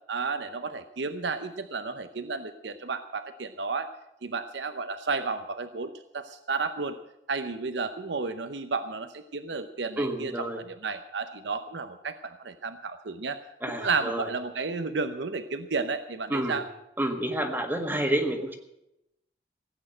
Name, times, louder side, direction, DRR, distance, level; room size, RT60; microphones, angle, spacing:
voice 1, 0.1-3.9 4.2-7.0 7.3-10.3 10.8-13.4 13.8-16.6, right 4 dB, 75° right, 9 dB, 0.8 m, -32 dB
voice 2, 10.0-10.6 13.6-14.3 16.3-16.6 17.0-18.6, right 1 dB, 10° right, 5 dB, 1.6 m, -29 dB
17.0 x 8.7 x 7.6 m, 0.86 s
head